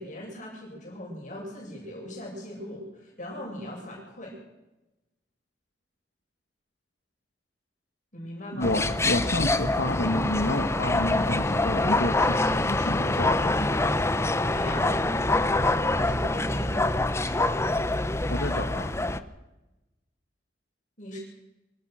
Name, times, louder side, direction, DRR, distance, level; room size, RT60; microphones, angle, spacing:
voice 1, 0.0-4.3 8.1-8.7 14.5-15.0 15.9-17.1 21.0-21.2, left 1 dB, 45° left, -2 dB, 7.3 m, -39 dB
voice 2, 8.5-13.8 18.3-18.9, left 1 dB, 75° left, 5 dB, 1.6 m, -29 dB
sound 1, 8.6-19.2, left 2 dB, 15° left, 0.8 m, -25 dB
25.0 x 18.0 x 6.5 m, 1.0 s
head